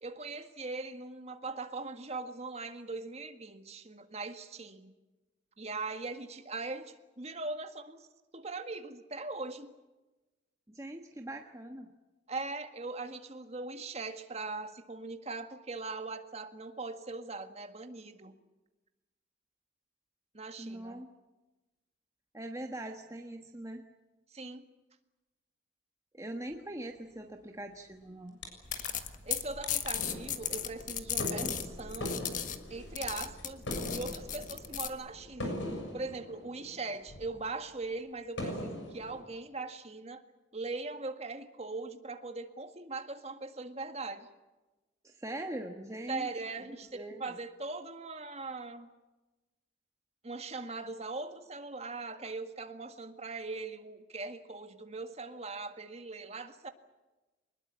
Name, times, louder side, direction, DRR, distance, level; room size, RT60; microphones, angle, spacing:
voice 1, 0.0-4.9 5.6-8.1 8.3-9.7 12.3-18.4 20.3-21.0 24.3-24.6 29.2-32.2 32.7-33.6 33.9-35.6 35.9-40.2 40.5-44.3 46.1-48.9 50.2-56.7, right 3 dB, 35° right, 7 dB, 1.8 m, -40 dB
voice 2, 10.7-11.9 20.6-21.1 22.3-23.9 26.1-28.4 45.0-46.3 46.9-47.4, right 1 dB, 15° right, 3 dB, 1.3 m, -42 dB
sound 1, 28.4-28.5 28.7-29.3 29.6-37.5 37.9-38.0 38.4-39.2, left 1 dB, 70° left, 6.9 m, -41 dB
sound 2, 28.6-34.9, left 10 dB, 40° left, 1.6 m, -37 dB
24.5 x 20.5 x 8.4 m, 1.1 s
head